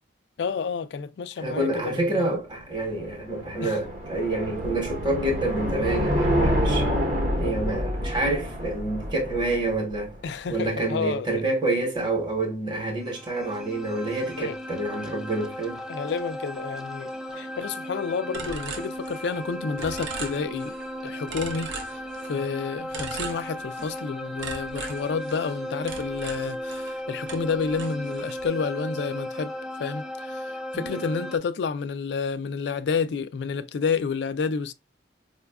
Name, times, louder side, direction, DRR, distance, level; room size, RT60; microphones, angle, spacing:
voice 1, 0.4-2.3 3.6-3.8 10.2-11.4 14.4-14.6 15.9-20.7 21.0-21.7 22.3-29.5 29.8-34.7, left 5 dB, 65° left, 0.3 m, -30 dB
voice 2, 1.4-6.9 7.4-10.2 10.5-15.8 30.7-31.0, right 2 dB, 25° right, 1.0 m, -28 dB
sound 1, 2.7-10.0, equal, 45° right, 0.9 m, -27 dB
sound 2, 13.0-31.4, equal, 5° right, 0.4 m, -36 dB
sound 3, 18.3-19.5 19.8-20.9 21.3-22.5 22.9-24.0 24.4-27.0 27.3-28.4, right 4 dB, 90° right, 0.7 m, -38 dB
4.8 x 2.3 x 2.3 m
head